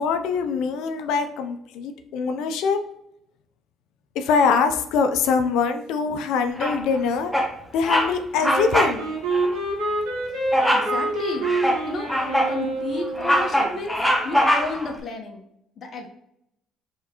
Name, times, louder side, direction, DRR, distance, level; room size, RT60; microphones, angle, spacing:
voice 1, 0.0-2.8 4.2-7.3 7.7-9.0, left 5 dB, 80° left, 7 dB, 0.6 m, -23 dB
Bird vocalization bird call bird song, 6.6-7.0 7.3-7.5 7.8-8.1 8.4-9.0 9.3-9.5 10.5-10.9 11.4-12.6 13.0-14.9, equal, 5° left, 0.9 m, -22 dB
Wind instrument woodwind instrument, 8.4-13.5, right 2 dB, 90° right, 1.6 m, -27 dB
voice 2, 10.7-11.5 11.8-12.1 12.5-15.4 15.8-16.1, left 2 dB, 45° left, 1 dB, 1.0 m, -32 dB
4.5 x 3.5 x 3.0 m, 0.79 s
cardioid pair, 85°, 0 cm